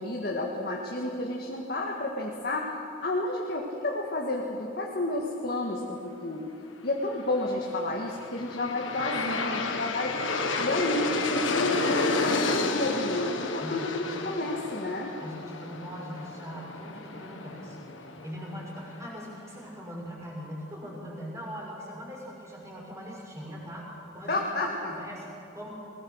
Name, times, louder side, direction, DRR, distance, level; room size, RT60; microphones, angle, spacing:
voice 1, 0.0-2.7 3.0-6.5 6.8-10.2 10.6-15.2 24.3-24.9, left 2 dB, 55° left, -1 dB, 1.8 m, -31 dB
Aircraft, 7.9-19.0, left 3 dB, 90° left, 1.5 m, -31 dB
voice 2, 13.6-14.4 15.2-25.7, equal, 15° right, -3 dB, 6.3 m, -41 dB
21.5 x 20.0 x 6.5 m, 2.7 s
head